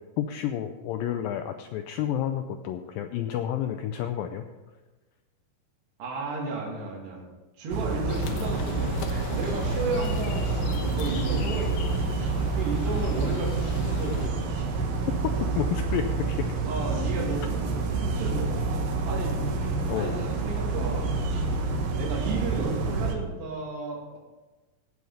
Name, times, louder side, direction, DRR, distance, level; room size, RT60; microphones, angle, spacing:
voice 1, 0.2-4.4 15.6-16.5 19.9-20.2, left 10 dB, 90° left, 7 dB, 2.0 m, -30 dB
voice 2, 6.0-7.2 7.6-9.0 9.3-12.0 12.6-14.5 16.6-17.6 17.9-18.5 19.0-19.4 19.9-21.1 21.9-24.2, right 3 dB, 85° right, -3 dB, 4.4 m, -33 dB
sound 1, 7.7-23.2, right 3 dB, 65° right, 2.8 m, -28 dB
sound 2, 8.1-14.3, left 6 dB, 70° left, 1.9 m, -36 dB
18.0 x 6.5 x 5.5 m, 1.2 s
omnidirectional pair, 4.7 m